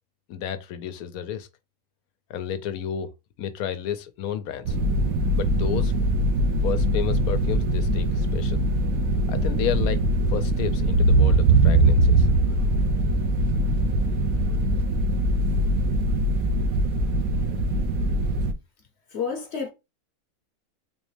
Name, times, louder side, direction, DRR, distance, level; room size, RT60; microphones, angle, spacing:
voice 1, 0.3-1.5 2.3-3.1 3.4-4.8 5.3-5.9 6.6-8.6 9.3-10.0 10.3-12.3, left 9 dB, 85° left, 1.1 m, -31 dB
sound 1, 4.7-18.5, right 1 dB, 80° right, 1.0 m, -22 dB
voice 2, 19.1-19.7, left 6 dB, 55° left, 1.0 m, -30 dB
3.8 x 3.0 x 3.2 m
omnidirectional pair, 1.5 m